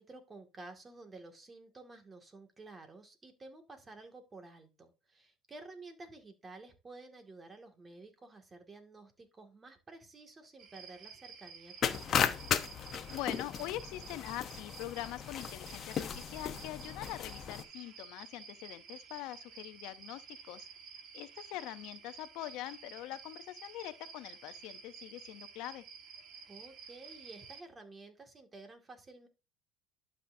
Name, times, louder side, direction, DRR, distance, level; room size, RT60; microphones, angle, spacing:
voice 1, 0.0-12.7 26.5-29.3, right 3 dB, 25° right, 2.1 m, -52 dB
sound 1, 10.6-27.6, right 6 dB, 55° right, 1.7 m, -52 dB
sound 2, 11.8-17.6, left 8 dB, 45° left, 0.9 m, -36 dB
voice 2, 13.1-20.7 21.1-25.8, left 15 dB, 70° left, 0.7 m, -43 dB
11.5 x 5.7 x 2.7 m
supercardioid pair, 100°, 0 cm